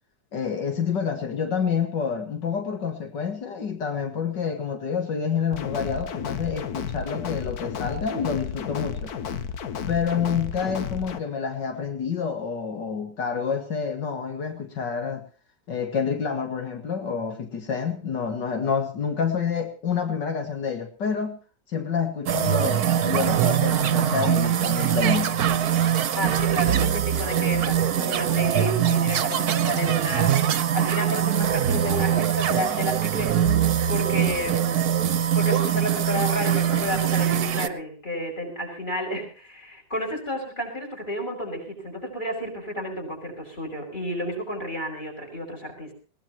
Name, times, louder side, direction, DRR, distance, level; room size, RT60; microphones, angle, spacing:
voice 1, 0.3-9.1 9.9-15.2 15.7-21.4 21.7-25.3, left 6 dB, 85° left, 5 dB, 2.5 m, -28 dB
sound 1, 5.5-11.2, left 7 dB, 65° left, 1.5 m, -32 dB
sound 2, 22.3-37.7, right 9 dB, 65° right, 1.4 m, -22 dB
voice 2, 26.2-33.4 33.7-34.8 35.3-45.9, equal, 25° left, 4 dB, 6.2 m, -31 dB
20.5 x 19.0 x 3.0 m, 0.37 s
omnidirectional pair, 1.8 m